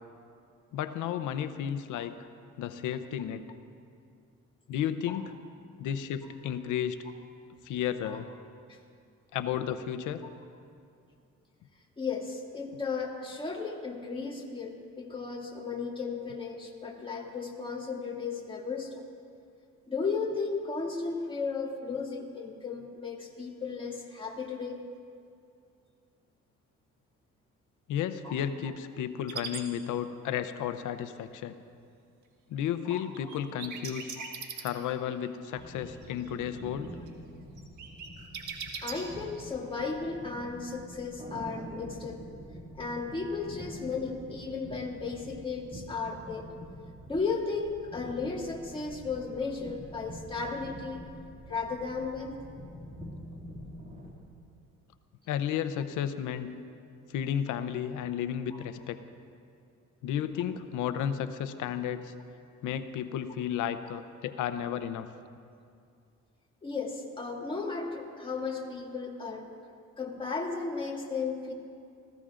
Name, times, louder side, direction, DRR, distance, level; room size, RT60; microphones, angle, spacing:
voice 1, 0.7-2.2 2.6-3.4 4.7-5.3 5.8-7.0 7.6-8.3 9.3-10.2 27.9-31.6 32.5-34.1 34.6-36.9 55.3-56.5 57.1-59.0 60.0-62.1 62.6-65.1, left 9 dB, 85° left, 10 dB, 0.7 m, -33 dB
voice 2, 12.0-19.0 19.9-24.8 28.2-28.3 32.8-33.3 34.2-34.3 38.8-42.2 42.7-46.5 47.1-51.1 51.5-52.4 63.8-63.9 66.6-69.5 70.0-71.5, left 4 dB, 15° left, -2 dB, 2.2 m, -35 dB
sound 1, 29.3-29.6 33.1-35.1 35.4-36.3 36.6-37.1 37.6-38.9, right 6 dB, 80° right, 1.6 m, -39 dB
sound 2, 35.5-54.1, equal, 25° right, 2.5 m, -46 dB
25.0 x 15.5 x 2.5 m, 2.4 s
cardioid pair, 90°, 30 cm